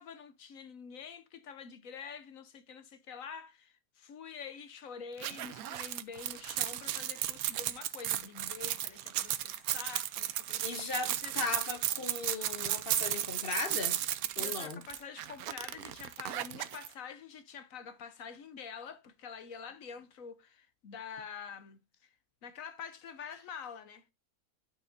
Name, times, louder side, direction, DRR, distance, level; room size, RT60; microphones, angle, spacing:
voice 1, 0.0-11.4 14.4-22.1 22.4-24.0, left 6 dB, 70° left, 1.2 m, -47 dB
sound 1, 5.2-16.9, right 12 dB, 80° right, 1.1 m, -35 dB
voice 2, 10.6-14.0 14.4-14.8, left 4 dB, 50° left, 0.8 m, -37 dB
12.0 x 4.9 x 2.6 m
omnidirectional pair, 1.5 m